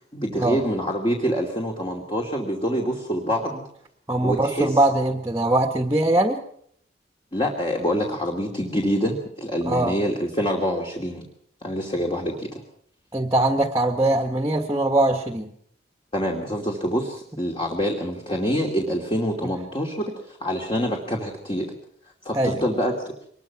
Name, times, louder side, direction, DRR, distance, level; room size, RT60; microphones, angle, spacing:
voice 1, 0.1-3.6 4.2-4.8 7.3-11.2 11.6-12.6 16.1-21.7 22.2-23.1, equal, 25° left, 1 dB, 2.7 m, -26 dB
voice 2, 4.1-6.4 9.6-10.0 13.1-15.5 19.4-19.5 22.3-22.6, right 1 dB, 15° right, 4 dB, 1.5 m, -22 dB
24.5 x 21.0 x 6.0 m, 0.66 s
head